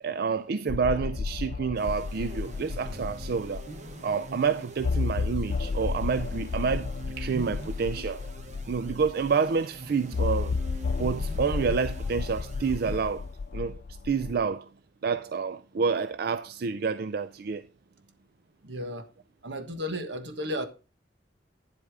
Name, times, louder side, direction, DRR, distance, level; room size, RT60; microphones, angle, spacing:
voice 1, 0.0-3.6 4.0-6.9 7.2-8.2 8.7-10.6 11.0-13.2 13.5-13.8 14.0-14.7 15.0-17.6, right 5 dB, 60° right, 0.4 m, -28 dB
sound 1, 0.7-3.9 4.3-4.4 4.8-9.3 10.1-14.4, left 4 dB, 50° left, 0.4 m, -32 dB
sound 2, 1.7-13.5, right 1 dB, 45° right, 1.2 m, -44 dB
voice 2, 18.6-19.1 19.4-20.7, equal, 80° right, 1.3 m, -33 dB
9.6 x 8.0 x 3.6 m
head